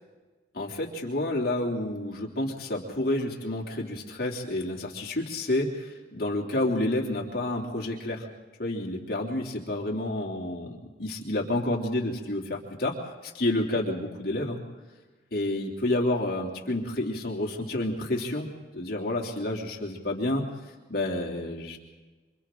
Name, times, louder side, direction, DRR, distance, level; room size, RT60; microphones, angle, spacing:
voice 1, 0.5-8.3 8.6-14.6 15.3-20.4 20.9-21.8, left 1 dB, 55° left, -1 dB, 3.2 m, -29 dB
27.0 x 26.0 x 3.9 m, 1.2 s
head